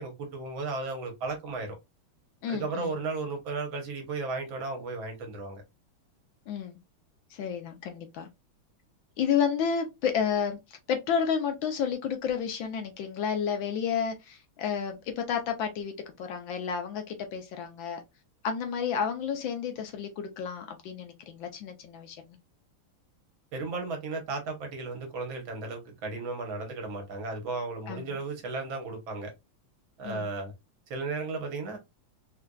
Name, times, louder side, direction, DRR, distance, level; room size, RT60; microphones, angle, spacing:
voice 1, 0.0-1.8 2.5-5.6 23.5-29.3 30.0-30.5 30.9-31.8, right 3 dB, 70° right, 1.7 m, -34 dB
voice 2, 2.4-3.0 6.5-6.8 7.3-8.3 9.2-18.0 18.4-22.4 27.9-28.2 30.0-30.3, left 7 dB, 70° left, 1.3 m, -31 dB
4.4 x 2.5 x 2.2 m
omnidirectional pair, 2.4 m